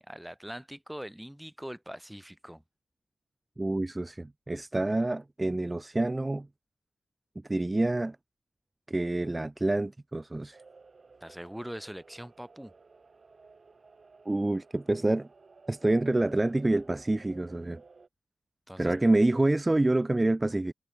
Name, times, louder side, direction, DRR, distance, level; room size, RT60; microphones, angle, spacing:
voice 1, 0.0-2.6 11.2-12.7 18.7-18.9, equal, 5° right, 2.0 m, -42 dB
voice 2, 3.6-6.5 7.5-8.2 8.9-10.6 14.3-15.3 15.7-17.8 18.8-20.7, right 2 dB, 25° right, 0.4 m, -27 dB
sound 1, 10.5-18.1, right 4 dB, 50° right, 1.0 m, -56 dB
cardioid pair, 65°, 0 cm